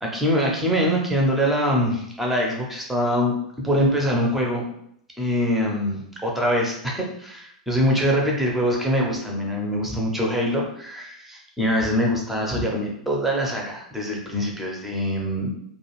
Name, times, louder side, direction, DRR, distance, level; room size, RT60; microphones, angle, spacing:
voice 1, 0.0-3.3 3.6-4.6 5.2-15.5, equal, 5° right, -2 dB, 0.7 m, -23 dB
2.4 x 2.4 x 3.0 m, 0.72 s
figure-of-eight pair, 95°, 4 cm